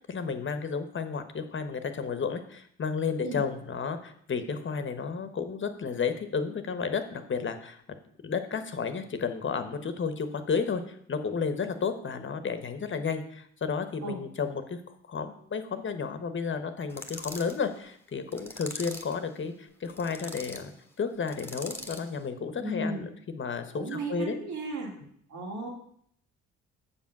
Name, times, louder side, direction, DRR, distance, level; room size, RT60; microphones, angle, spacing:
voice 1, 0.0-7.8 8.2-14.8 15.1-20.7 21.0-23.0 23.3-24.4, left 5 dB, 40° left, 9 dB, 1.1 m, -32 dB
sound 1, 16.9-17.6 18.3-19.2 19.9-20.6 21.3-22.1, left 2 dB, 5° left, 1.3 m, -41 dB
voice 2, 22.6-23.1 23.8-24.9 25.3-25.7, right 2 dB, 75° right, 0 dB, 2.8 m, -34 dB
7.3 x 7.1 x 5.9 m, 0.67 s
cardioid pair, 90°, 30 cm